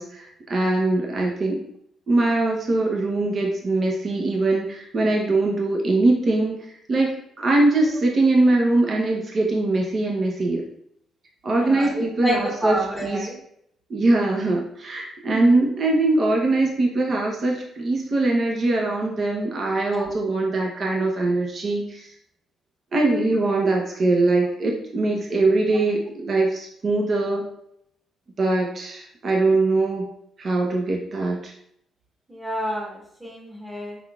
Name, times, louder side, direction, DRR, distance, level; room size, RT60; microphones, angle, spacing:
voice 1, 0.0-1.6 2.1-6.6 6.9-10.7 11.4-12.8 13.0-13.3 13.9-22.1 22.9-27.5 28.4-30.1 30.4-31.5, right 2 dB, 45° right, 0 dB, 0.9 m, -22 dB
voice 2, 11.6-13.4 15.3-15.4 19.9-20.1 32.3-34.0, equal, 10° right, -1 dB, 1.4 m, -29 dB
4.6 x 3.6 x 2.4 m, 0.71 s
cardioid pair, 90°, 0 cm